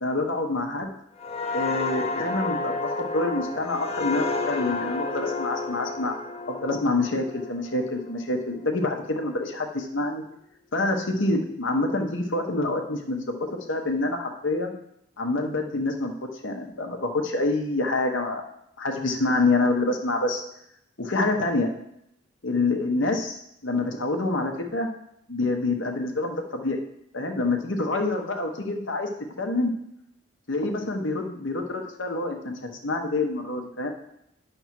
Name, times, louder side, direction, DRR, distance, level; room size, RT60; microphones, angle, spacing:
voice 1, 0.0-0.9 1.5-6.1 6.5-10.2 10.7-14.8 15.2-16.1 16.4-18.4 18.8-20.4 21.0-21.7 22.4-24.9 25.3-26.8 27.1-29.1 29.4-29.7 30.5-33.9, left 2 dB, 75° left, 3 dB, 1.0 m, -27 dB
sound 1, 1.2-8.7 9.1-9.3, left 3 dB, 30° left, 0.6 m, -31 dB
9.3 x 3.5 x 5.9 m, 0.77 s
head